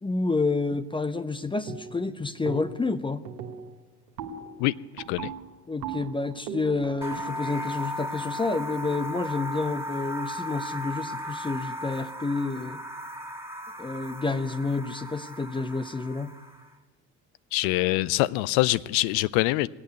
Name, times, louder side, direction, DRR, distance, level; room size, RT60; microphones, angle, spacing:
voice 1, 0.0-3.2 5.7-12.8 13.8-16.3, left 3 dB, 10° left, 0.6 m, -29 dB
sound 1, 1.7-2.1 2.4-2.9 3.2-9.1, right 6 dB, 70° right, 1.5 m, -40 dB
sound 2, 7.0-16.7, equal, 5° right, 2.0 m, -36 dB
voice 2, 17.5-19.7, left 19 dB, 60° left, 0.6 m, -24 dB
18.0 x 8.4 x 9.2 m
figure-of-eight pair, 60°, 47 cm